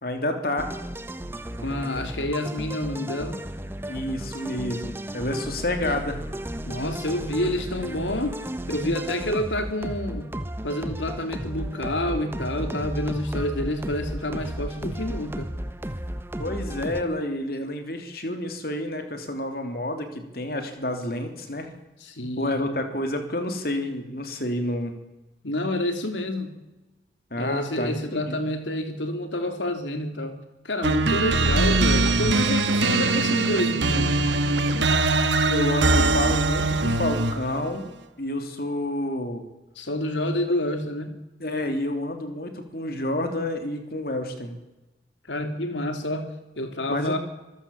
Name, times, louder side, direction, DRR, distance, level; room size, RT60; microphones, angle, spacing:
voice 1, 0.0-0.7 3.9-6.2 16.4-21.7 22.4-24.9 27.3-28.4 35.5-37.8 38.2-39.4 41.4-44.5 46.9-47.2, left 1 dB, 55° left, 6 dB, 3.2 m, -29 dB
sound 1, 0.6-17.0, right 1 dB, 15° right, 1.1 m, -34 dB
voice 2, 1.6-3.4 6.6-8.4 8.7-10.4 10.6-15.5 22.0-22.6 25.4-26.5 27.4-30.4 30.6-34.2 39.7-41.2 45.3-47.2, left 1 dB, 90° left, 6 dB, 3.2 m, -28 dB
sound 2, 30.8-37.5, right 2 dB, 85° right, 1.4 m, -22 dB
25.5 x 15.5 x 7.2 m, 1.0 s
head